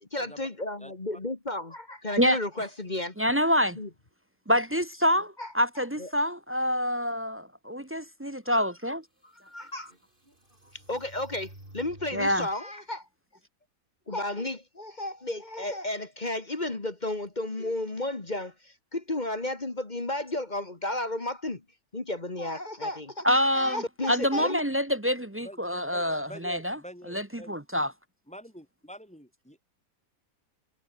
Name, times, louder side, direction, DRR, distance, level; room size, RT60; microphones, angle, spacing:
voice 1, 0.0-3.2 3.8-3.9 5.4-5.5 6.0-6.1 9.2-9.9 10.7-13.1 14.1-21.6 21.9-23.3 23.5-24.6, left 2 dB, 30° left, 2.1 m, -33 dB
voice 2, 3.2-3.8 4.5-9.0 12.1-12.5 23.2-26.8 27.1-27.9, equal, 15° right, 0.6 m, -26 dB
sound 1, 8.8-8.9 9.5-12.6, right 1 dB, 35° right, 7.4 m, -51 dB
voice 3, 25.9-27.6 28.3-29.6, equal, 5° left, 4.1 m, -46 dB
omnidirectional pair, 1.5 m